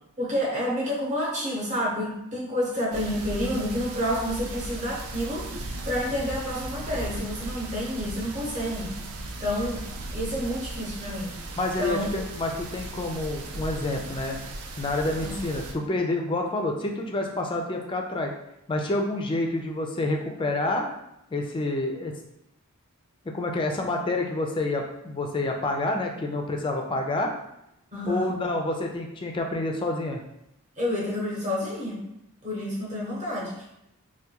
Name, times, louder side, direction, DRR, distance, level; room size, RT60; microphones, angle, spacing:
voice 1, 0.2-9.0 9.4-11.3 11.8-12.1 15.2-15.3 27.9-28.4 30.8-32.0 32.4-33.7, equal, 35° right, -6 dB, 0.9 m, -29 dB
sound 1, 2.9-15.7, right 2 dB, 80° right, 0.4 m, -37 dB
voice 2, 11.6-14.4 14.8-18.3 18.7-20.9 21.3-22.1 23.3-27.3 28.1-30.2, left 2 dB, 20° left, 2 dB, 0.3 m, -28 dB
3.4 x 2.2 x 2.8 m, 0.84 s
head